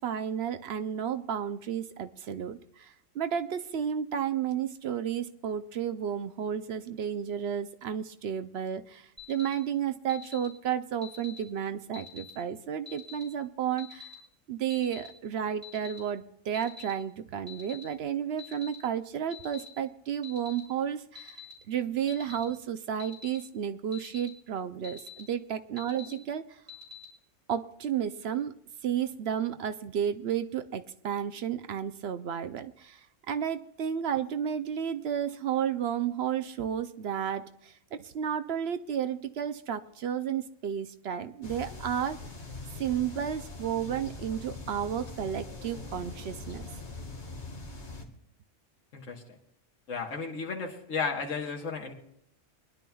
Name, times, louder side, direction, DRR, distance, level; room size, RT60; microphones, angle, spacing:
voice 1, 0.0-14.1 14.5-21.4 21.7-26.6 27.5-28.5 28.8-42.2 42.7-46.7, right 9 dB, 65° right, 9 dB, 0.8 m, -32 dB
Alarm, 9.2-9.5 10.1-10.5 11.0-11.4 11.9-12.3 12.9-13.2 13.8-14.1 14.7-15.1 15.6-16.0 16.5-16.9 17.5-17.8 18.4-18.7 19.3-19.7 20.2-20.6 21.2-21.5 22.1-22.4 23.0-23.4 23.9-24.3 24.8-25.2 25.8-26.1 26.7-27.0, left 6 dB, 10° right, 3.5 m, -46 dB
sound 1, 41.4-48.0, left 3 dB, 60° left, 2.1 m, -42 dB
voice 2, 48.9-49.2 49.9-51.9, left 5 dB, 85° left, 0 dB, 1.7 m, -33 dB
24.0 x 11.0 x 2.3 m, 0.71 s
omnidirectional pair, 1.3 m